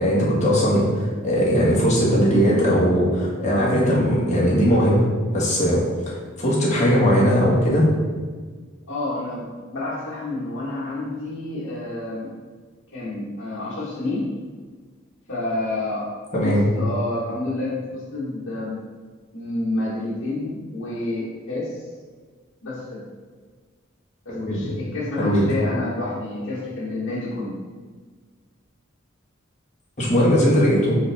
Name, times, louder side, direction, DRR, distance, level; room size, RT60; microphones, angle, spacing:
voice 1, 0.0-5.1 5.3-7.9 16.3-16.7 24.3-24.8 25.2-25.5 30.0-31.0, equal, 35° left, -6 dB, 1.6 m, -19 dB
voice 2, 8.9-12.3 12.9-14.3 15.3-16.2 16.4-18.8 19.3-21.8 22.6-23.1 24.2-27.6, left 2 dB, 75° left, -9 dB, 1.2 m, -29 dB
5.5 x 5.2 x 3.4 m, 1.5 s
head